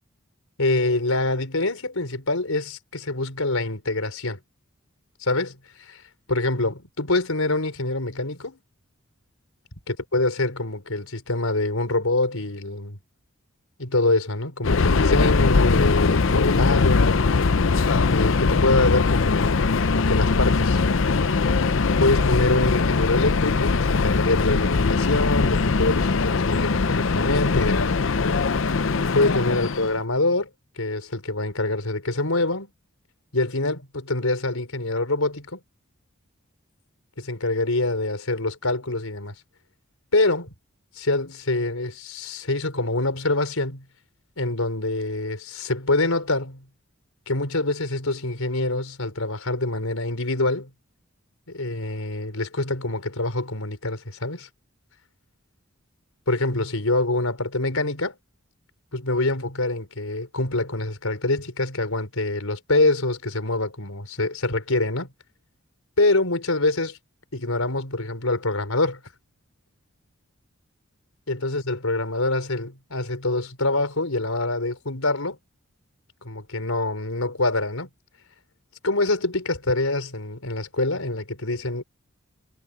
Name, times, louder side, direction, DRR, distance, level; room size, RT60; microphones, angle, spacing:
voice 1, 0.6-4.4 5.2-6.0 6.3-8.6 9.9-13.0 13.8-17.2 18.1-20.8 22.0-27.9 29.1-30.5 30.8-32.7 33.3-35.6 37.2-39.3 40.1-40.5 41.0-43.8 44.4-46.6 47.3-50.7 51.5-54.5 56.3-58.2 58.9-65.1 66.0-66.9 67.3-69.0 71.3-75.4 76.2-77.9 78.8-81.8, left 2 dB, 90° left, 4.5 m, -25 dB
Subway metro underground, 14.6-30.0, left 4 dB, 65° left, 0.6 m, -21 dB
head